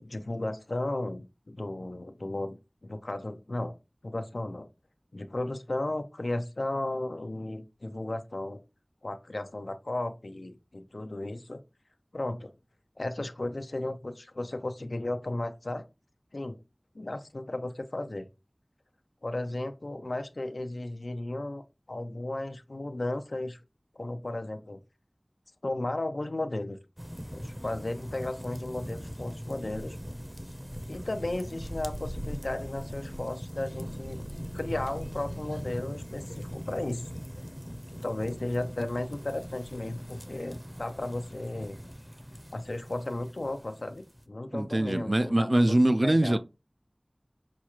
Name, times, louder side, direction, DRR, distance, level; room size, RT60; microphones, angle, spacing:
voice 1, 0.0-3.7 4.0-4.7 5.1-8.6 9.0-11.6 12.1-12.5 13.0-15.9 16.3-16.6 16.9-18.3 19.2-21.6 21.9-23.6 24.0-24.8 25.6-26.8 27.3-30.0 30.9-34.2 34.5-37.0 37.9-41.8 42.5-45.8 46.0-46.4, left 2 dB, 85° left, 0.5 m, -34 dB
sound 1, 27.0-44.2, equal, 10° right, 0.6 m, -40 dB
voice 2, 44.5-46.4, right 1 dB, 60° right, 0.3 m, -23 dB
6.0 x 2.4 x 2.9 m
wide cardioid pair, 40°, 0 cm